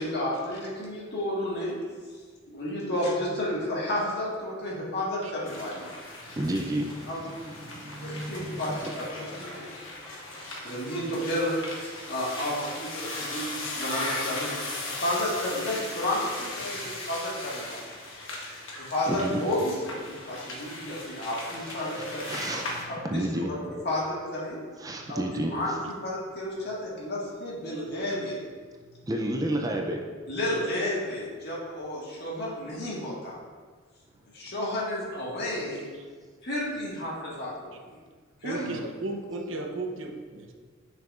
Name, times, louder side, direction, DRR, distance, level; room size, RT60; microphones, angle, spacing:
voice 1, 0.0-1.7 2.5-6.0 7.1-7.2 8.0-8.7 9.0-9.8 10.6-17.9 18.4-22.4 22.9-23.3 23.8-24.6 25.1-28.4 30.3-33.4 34.3-35.8 36.4-38.0 38.4-38.7, left 1 dB, 60° left, -5 dB, 1.7 m, -32 dB
sound 1, 5.4-22.8, left 2 dB, 85° left, 1.2 m, -38 dB
voice 2, 6.1-9.7 16.6-16.9 19.1-19.4 21.6-24.2 24.8-25.8 29.0-30.6 38.5-38.7, right 1 dB, 20° right, 1 dB, 0.4 m, -33 dB
voice 3, 38.4-40.5, right 2 dB, 75° right, 2 dB, 0.7 m, -35 dB
6.7 x 6.5 x 2.5 m, 1.5 s
head